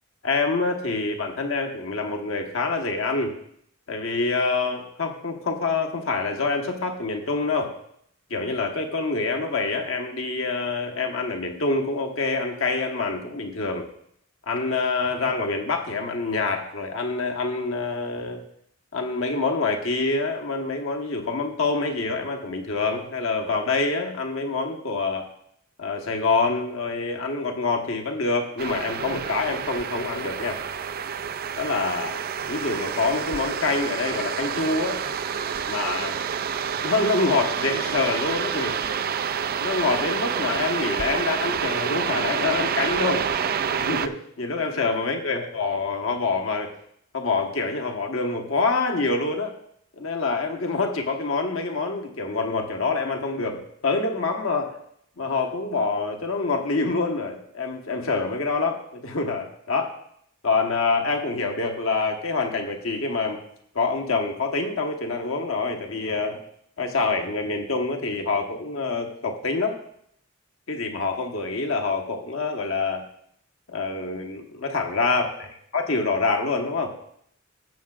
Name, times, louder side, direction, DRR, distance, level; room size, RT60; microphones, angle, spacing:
voice 1, 0.2-3.3 3.9-7.7 8.3-13.9 14.5-18.4 18.9-25.3 25.8-30.6 31.6-32.2 32.5-35.0 35.7-36.2 36.8-38.8 39.6-43.3 43.7-46.7 47.1-49.5 50.0-54.8 55.2-60.0 60.4-63.4 63.7-66.4 66.8-69.8 70.7-73.0 73.7-75.5 75.7-76.9, left 3 dB, 75° left, 3 dB, 1.2 m, -26 dB
sound 1, 28.6-44.1, right 7 dB, 45° right, 0.4 m, -28 dB
15.5 x 7.5 x 2.4 m, 0.71 s
head